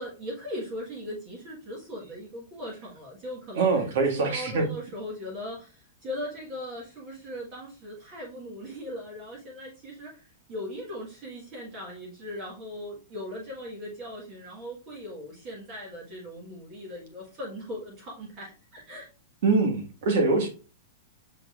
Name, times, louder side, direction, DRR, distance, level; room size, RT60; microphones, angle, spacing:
voice 1, 0.0-3.7 4.1-10.2 10.5-19.1, left 1 dB, 30° right, 1.4 m, -39 dB
voice 2, 3.5-4.6 19.4-20.5, right 3 dB, 55° right, 1.5 m, -23 dB
5.8 x 3.8 x 2.4 m
supercardioid pair, 170°, 0 cm